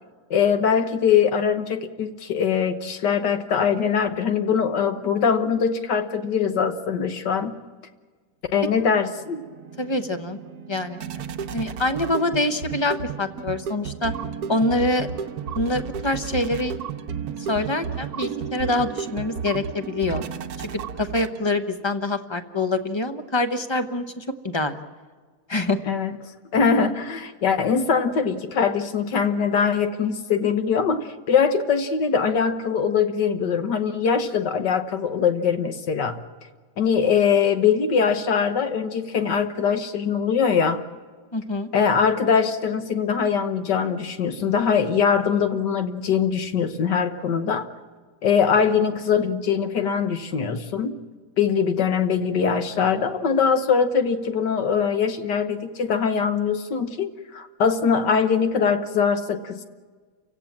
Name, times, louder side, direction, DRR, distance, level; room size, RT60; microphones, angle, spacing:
voice 1, 0.3-7.5 8.5-9.4 25.9-26.1 26.5-36.2 36.8-40.8 41.7-47.7 48.2-50.9 51.4-59.6, left 6 dB, 65° left, 8 dB, 1.7 m, -22 dB
sound 1, 9.0-21.7, right 7 dB, 60° right, 1.2 m, -33 dB
voice 2, 9.8-10.4 10.7-11.0 11.5-14.1 14.5-15.1 15.5-16.7 17.5-20.2 21.0-24.8 25.5-25.8 41.3-41.7, left 2 dB, 20° left, 8 dB, 0.8 m, -25 dB
29.0 x 16.5 x 7.4 m, 1.5 s
omnidirectional pair, 2.0 m